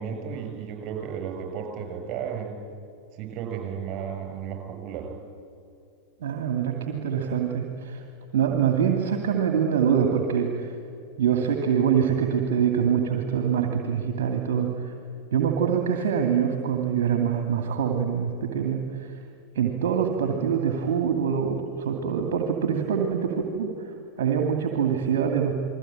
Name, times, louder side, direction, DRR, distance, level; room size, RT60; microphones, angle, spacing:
voice 1, 0.0-2.6 3.1-5.1, right 7 dB, 40° right, 4 dB, 6.9 m, -34 dB
voice 2, 6.2-8.0 8.3-10.7 11.2-14.9 15.3-19.1 19.5-25.5, right 7 dB, 55° right, 3 dB, 2.5 m, -24 dB
29.0 x 21.5 x 8.9 m, 2.5 s
figure-of-eight pair, 90°, 0 cm